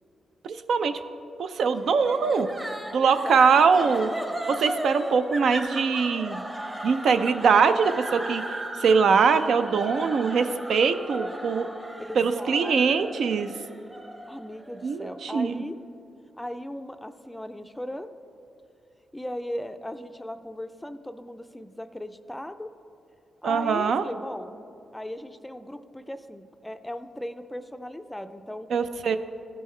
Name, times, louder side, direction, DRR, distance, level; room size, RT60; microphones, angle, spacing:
voice 1, 0.4-1.0 1.4-2.5 2.9-4.1 4.5-6.4 6.8-11.7 12.1-13.5 14.8-15.6 23.4-24.1 28.7-29.2, right 5 dB, 70° right, 10 dB, 0.4 m, -22 dB
sound 1, 2.1-15.2, right 1 dB, 20° right, 0.9 m, -36 dB
voice 2, 3.0-4.0 4.3-4.4 12.0-13.2 14.3-15.8 16.4-18.1 19.1-22.7 23.4-24.5 24.9-28.7 29.1-29.2, left 1 dB, 10° left, 9 dB, 0.4 m, -37 dB
14.0 x 5.4 x 3.2 m, 2.6 s
cardioid pair, 75°, 0 cm